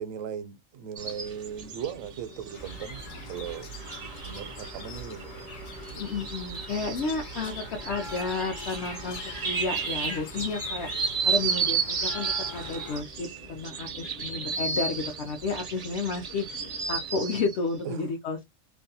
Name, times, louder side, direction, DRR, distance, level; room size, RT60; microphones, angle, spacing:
voice 1, 0.0-3.8 4.3-5.5 17.8-18.0, right 8 dB, 85° right, 1.0 m, -38 dB
sound 1, 1.0-17.6, right 5 dB, 50° right, 0.4 m, -34 dB
sound 2, 2.5-13.0, left 3 dB, 85° left, 1.1 m, -41 dB
voice 2, 6.0-16.5 16.9-18.4, left 4 dB, 65° left, 0.8 m, -32 dB
2.6 x 2.2 x 2.6 m
omnidirectional pair, 1.3 m